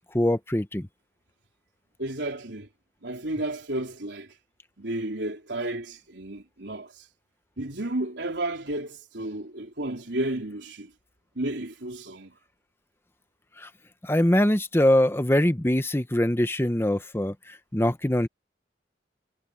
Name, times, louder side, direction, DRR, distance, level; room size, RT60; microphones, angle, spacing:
voice 1, 0.1-0.9 13.6-13.7 14.0-18.3, left 1 dB, 15° left, 0.9 m, -23 dB
voice 2, 2.0-2.7 3.0-4.3 4.8-7.1 7.6-10.9 11.4-12.3, right 1 dB, 80° right, 3.7 m, -32 dB
head